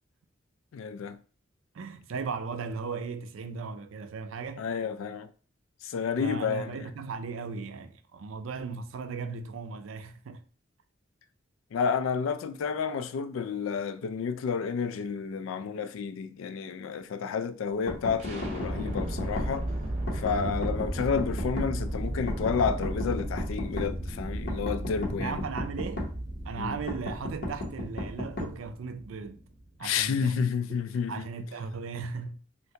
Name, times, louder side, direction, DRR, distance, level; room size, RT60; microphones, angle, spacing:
voice 1, 0.7-1.2 4.6-5.3 5.8-6.9 11.7-19.7 20.1-25.4 26.6-26.8 29.8-31.3, left 6 dB, 85° left, 0.3 m, -30 dB
voice 2, 1.7-4.6 6.2-10.4 20.4-20.7 25.1-26.1 26.5-29.4 29.8-32.4, right 5 dB, 85° right, 0.4 m, -37 dB
sound 1, 17.9-19.5 20.1-21.7 22.3-23.9 24.5-26.1 26.9-28.5, left 1 dB, 55° left, 0.7 m, -34 dB
sound 2, 18.2-30.1, right 1 dB, 35° right, 0.7 m, -35 dB
3.2 x 2.7 x 2.8 m
head